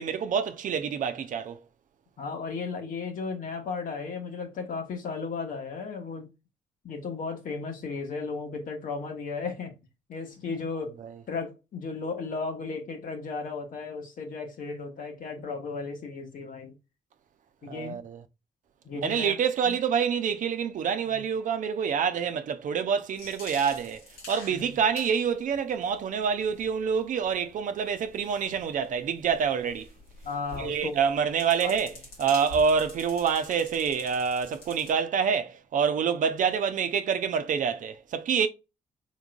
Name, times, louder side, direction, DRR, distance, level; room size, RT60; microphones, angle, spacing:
voice 1, 0.0-1.6 17.7-18.2 19.0-29.9 30.6-31.9 32.2-38.5, right 6 dB, 65° right, 0.6 m, -27 dB
voice 2, 2.2-6.3 6.8-9.7 10.1-11.0 11.3-16.7 17.6-18.0 18.8-19.3 19.6-19.7 24.5-24.8 30.2-31.0 31.6-31.8, left 4 dB, 70° left, 1.3 m, -35 dB
sound 1, 23.2-34.9, left 2 dB, 85° left, 1.9 m, -47 dB
4.0 x 3.7 x 2.4 m
supercardioid pair, 55°, 14 cm